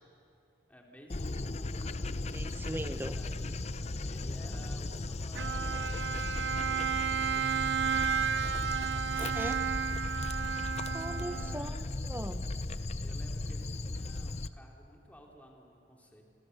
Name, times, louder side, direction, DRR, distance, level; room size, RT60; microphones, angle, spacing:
voice 1, 0.7-2.0 2.8-3.6 4.0-8.9 9.3-9.8 11.2-11.7 13.0-16.2, equal, 10° left, 0 dB, 3.1 m, -56 dB
Dog, 1.1-14.5, left 2 dB, 40° left, 0.7 m, -36 dB
voice 2, 2.3-3.2 9.2-9.5 10.9-12.4, right 1 dB, 10° right, 10 dB, 0.8 m, -39 dB
Bowed string instrument, 5.4-11.8, right 7 dB, 85° right, 0.7 m, -32 dB
27.5 x 24.5 x 6.6 m, 2.6 s
head